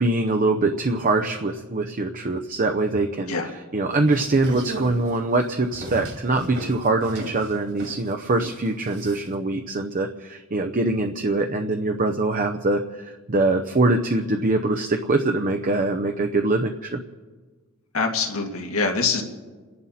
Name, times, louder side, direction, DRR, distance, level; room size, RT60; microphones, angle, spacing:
voice 1, 0.0-17.0, right 2 dB, 40° right, 5 dB, 0.8 m, -23 dB
sound 1, 3.9-9.4, right 1 dB, 60° right, 2.6 m, -38 dB
voice 2, 17.9-19.2, left 4 dB, 80° left, 2 dB, 2.1 m, -24 dB
30.0 x 11.0 x 4.3 m, 1.4 s
head